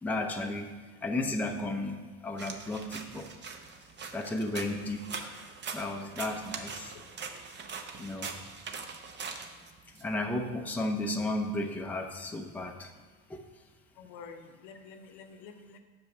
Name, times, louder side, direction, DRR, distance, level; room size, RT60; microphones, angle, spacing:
voice 1, 0.0-3.3 4.1-5.4 5.7-6.9 8.0-8.4 10.0-12.9 13.3-13.4, left 2 dB, 5° left, 3 dB, 0.6 m, -34 dB
sound 1, 2.4-10.0, right 5 dB, 30° right, 0.8 m, -42 dB
voice 2, 14.0-15.8, left 5 dB, 60° left, 7 dB, 0.8 m, -48 dB
6.1 x 5.1 x 5.8 m, 1.5 s
hypercardioid pair, 90°, 36 cm